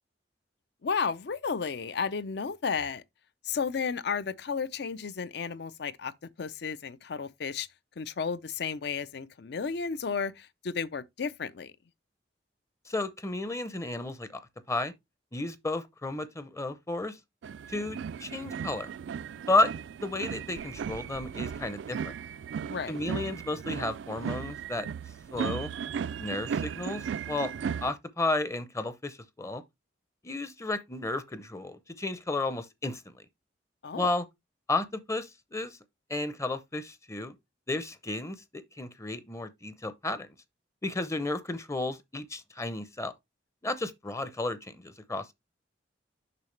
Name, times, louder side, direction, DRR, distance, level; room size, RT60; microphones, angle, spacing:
voice 1, 0.8-3.0 3.4-6.1 6.4-7.7 8.0-11.7 22.7-23.0 33.8-34.1, left 5 dB, 65° left, 0.5 m, -33 dB
voice 2, 12.9-14.3 14.7-14.9 15.3-17.2 17.7-18.9 19.5-19.7 20.0-22.1 22.9-24.9 25.3-25.7 26.2-27.5 27.8-29.6 30.2-33.0 33.9-34.2 34.7-35.8 36.1-37.3 37.7-40.3 40.8-43.1 43.6-45.3, left 2 dB, 15° left, 0.6 m, -32 dB
sound 1, 17.4-27.9, right 7 dB, 85° right, 0.3 m, -36 dB
6.8 x 5.7 x 3.2 m
head